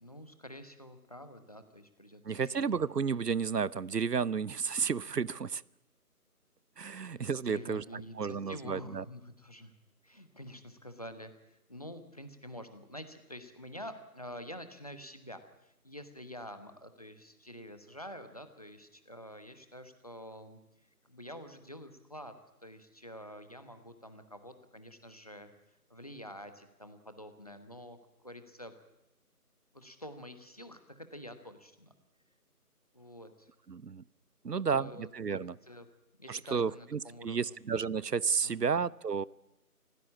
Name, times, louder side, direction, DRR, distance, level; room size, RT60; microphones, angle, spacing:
voice 1, 0.0-2.6 6.9-9.7 10.0-20.6 21.0-22.3 22.6-25.5 25.9-28.0 28.2-28.8 29.7-31.9 32.9-33.5 34.4-35.9 36.2-37.6 38.4-38.8, equal, 25° left, 9 dB, 1.1 m, -48 dB
voice 2, 2.2-5.6 6.8-7.8 8.2-9.0 33.7-34.0 34.4-35.6 36.3-39.2, right 6 dB, 80° right, 23 dB, 0.8 m, -32 dB
24.5 x 16.0 x 8.6 m, 0.92 s
figure-of-eight pair, 160°, 47 cm